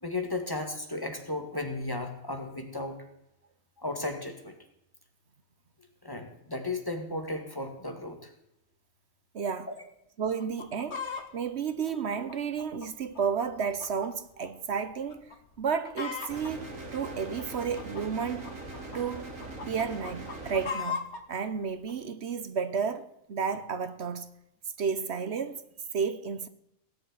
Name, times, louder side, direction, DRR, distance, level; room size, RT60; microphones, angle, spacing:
voice 1, 0.0-3.0 3.8-4.6 6.0-8.3, left 2 dB, 15° left, 1.8 m, -35 dB
voice 2, 9.3-9.7 10.2-18.6 18.9-19.4 19.7-24.3 24.8-25.7 25.9-26.5, right 6 dB, 60° right, 1.0 m, -32 dB
Chicken rooster, 10.4-11.3 11.9-14.1 14.4-14.5 15.1-15.4 15.6-16.5 17.2-19.0 19.4-21.2 21.9-22.0, left 6 dB, 55° left, 1.7 m, -37 dB
sound 1, 16.3-20.7, right 2 dB, 75° right, 2.8 m, -41 dB
17.5 x 6.9 x 9.2 m
omnidirectional pair, 1.4 m